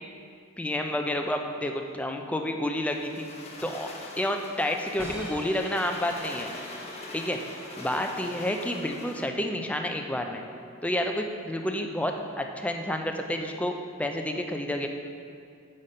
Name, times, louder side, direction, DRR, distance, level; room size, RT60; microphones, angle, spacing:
voice 1, 0.6-3.3 3.6-3.9 4.2-6.5 7.1-7.4 7.8-10.4 10.8-14.9, left 1 dB, 5° left, 4 dB, 0.4 m, -30 dB
sound 1, 2.9-9.4, left 2 dB, 30° left, 0.8 m, -43 dB
sound 2, 5.0-11.0, equal, 10° right, 1.0 m, -44 dB
6.5 x 5.7 x 5.3 m, 2.3 s
head